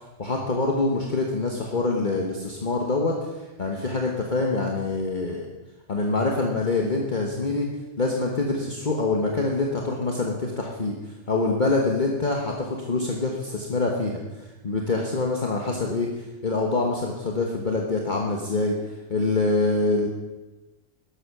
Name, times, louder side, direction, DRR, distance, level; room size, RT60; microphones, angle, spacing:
voice 1, 0.2-5.5 5.9-7.7 8.0-18.8 19.1-20.1, left 3 dB, 40° left, 0 dB, 1.5 m, -25 dB
12.5 x 12.0 x 6.2 m, 1.1 s
omnidirectional pair, 1.3 m